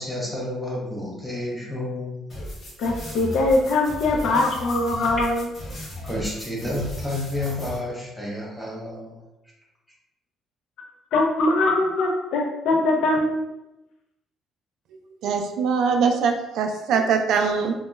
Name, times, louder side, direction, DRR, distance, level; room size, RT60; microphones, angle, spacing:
voice 1, 0.0-2.3 6.0-9.2, left 1 dB, 5° left, -3 dB, 0.5 m, -30 dB
sound 1, 2.3-7.8, equal, 30° left, 0.8 m, -36 dB
voice 2, 2.8-5.5 11.1-13.4, left 2 dB, 65° left, 1 dB, 0.4 m, -22 dB
voice 3, 15.2-17.7, right 5 dB, 65° right, 5 dB, 0.3 m, -22 dB
2.2 x 2.1 x 3.0 m, 0.96 s
cardioid pair, 150°, 0 cm